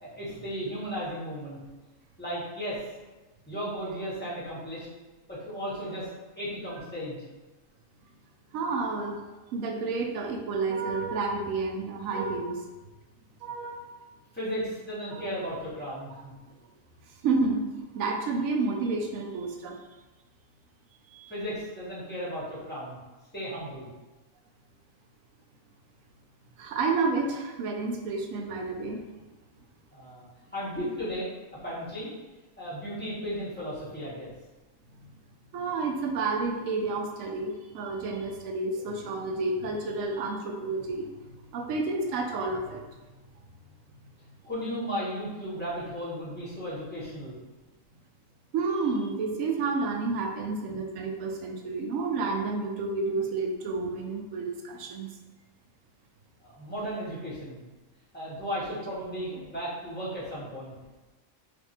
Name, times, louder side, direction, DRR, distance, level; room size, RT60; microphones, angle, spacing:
voice 1, 0.0-1.6 2.2-2.9 3.5-4.9 5.3-6.1 6.3-7.2 14.3-16.3 21.3-23.0 23.3-23.9 29.9-30.2 30.5-31.3 31.6-32.1 32.6-34.3 44.4-47.3 56.4-57.6 58.1-60.7, equal, 10° left, -9 dB, 1.0 m, -35 dB
voice 2, 8.5-9.2 9.5-12.6 13.4-13.9 15.1-15.2 17.2-19.8 21.1-21.3 26.6-29.0 35.5-41.1 41.5-42.8 48.5-55.1, right 3 dB, 85° right, 2 dB, 1.0 m, -30 dB
2.6 x 2.5 x 4.1 m, 1.1 s
omnidirectional pair, 1.4 m